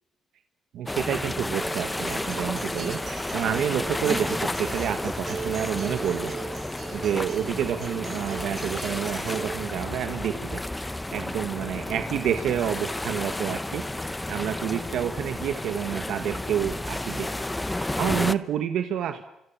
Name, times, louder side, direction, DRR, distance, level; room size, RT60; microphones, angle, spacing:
voice 1, 0.7-6.3 6.9-13.8 14.3-19.2, right 9 dB, 80° right, 8 dB, 1.3 m, -29 dB
sound 1, 0.9-18.3, left 1 dB, 10° left, 0.9 m, -32 dB
Acoustic guitar, 1.6-9.6, right 6 dB, 50° right, 1.3 m, -39 dB
26.5 x 26.0 x 7.3 m, 0.87 s
cardioid pair, 90°, 0 cm